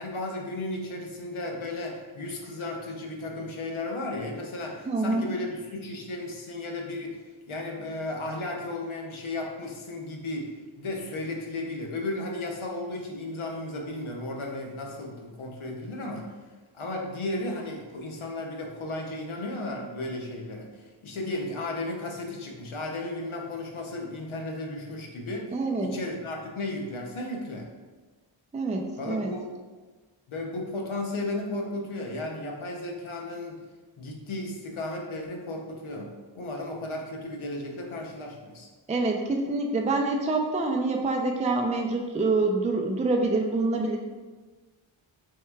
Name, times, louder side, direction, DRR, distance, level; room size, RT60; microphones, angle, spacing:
voice 1, 0.0-16.3 16.7-27.7 29.0-29.5 30.3-33.6 34.0-38.7, left 2 dB, 80° left, 1 dB, 0.8 m, -34 dB
voice 2, 4.9-5.3 25.5-25.9 28.5-29.3 38.9-44.0, right 3 dB, 15° right, 2 dB, 0.4 m, -26 dB
4.6 x 4.1 x 2.3 m, 1.3 s
cardioid pair, 55°, 48 cm